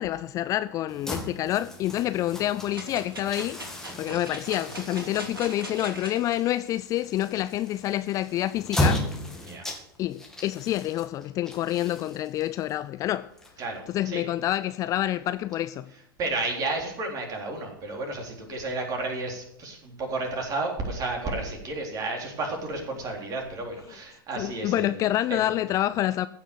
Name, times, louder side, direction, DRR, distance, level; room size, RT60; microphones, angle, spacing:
voice 1, 0.0-3.6 4.0-9.1 10.0-13.3 13.9-15.9 24.4-26.3, left 13 dB, 30° left, 0.4 m, -27 dB
sound 1, 0.9-14.0, left 1 dB, 5° left, 2.3 m, -35 dB
sound 2, 2.7-6.4 6.9-7.0, right 2 dB, 75° right, 3.2 m, -40 dB
voice 2, 13.6-14.2 16.2-24.9 25.3-25.4, right 2 dB, 30° right, 3.6 m, -32 dB
15.5 x 6.3 x 6.8 m
figure-of-eight pair, 90°, 12 cm